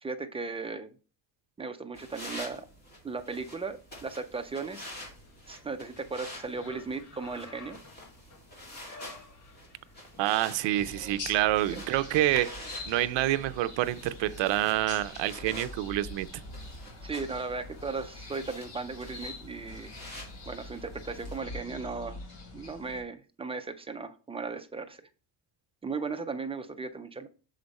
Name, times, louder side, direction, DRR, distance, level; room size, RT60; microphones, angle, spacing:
voice 1, 0.0-0.9 1.6-2.6 3.0-4.8 5.5-7.8 11.7-11.8 17.0-19.9 20.5-22.2 22.5-25.0 25.8-27.3, right 4 dB, 15° right, 0.3 m, -36 dB
sound 1, 1.9-21.4, left 1 dB, 20° left, 2.2 m, -48 dB
sound 2, 4.4-14.9, left 3 dB, 45° left, 1.5 m, -55 dB
voice 2, 10.2-16.3, right 15 dB, 75° right, 0.6 m, -27 dB
sound 3, 10.8-23.0, left 2 dB, 70° left, 3.4 m, -44 dB
6.9 x 5.1 x 4.1 m
cardioid pair, 165°, 44 cm